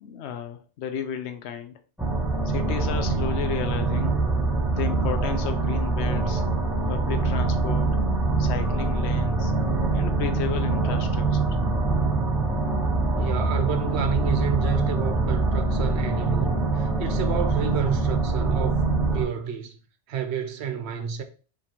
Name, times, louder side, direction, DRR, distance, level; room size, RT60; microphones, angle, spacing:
voice 1, 0.0-1.8 2.5-4.2 4.7-6.4 6.9-7.9 8.4-9.5 9.9-11.6, left 8 dB, 75° left, 0.8 m, -33 dB
sound 1, 2.0-19.2, right 3 dB, ahead, 0.8 m, -24 dB
sound 2, 7.7-17.7, left 17 dB, 20° right, 0.4 m, -39 dB
voice 2, 13.2-18.8 19.1-19.8 20.1-21.2, right 8 dB, 70° right, 0.9 m, -30 dB
5.3 x 2.4 x 2.9 m
omnidirectional pair, 1.2 m